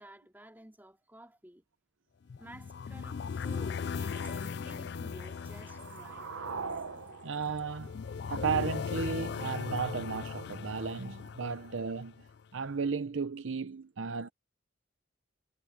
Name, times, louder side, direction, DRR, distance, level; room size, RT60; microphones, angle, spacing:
voice 1, 0.0-1.7 2.4-6.3, right 1 dB, 10° right, 2.5 m, -52 dB
sound 1, 2.3-12.4, left 6 dB, 55° left, 0.3 m, -38 dB
sound 2, 4.9-8.9, right 5 dB, 85° right, 1.2 m, -43 dB
voice 2, 7.2-7.9 8.3-12.2 12.5-14.3, right 5 dB, 70° right, 0.7 m, -34 dB
head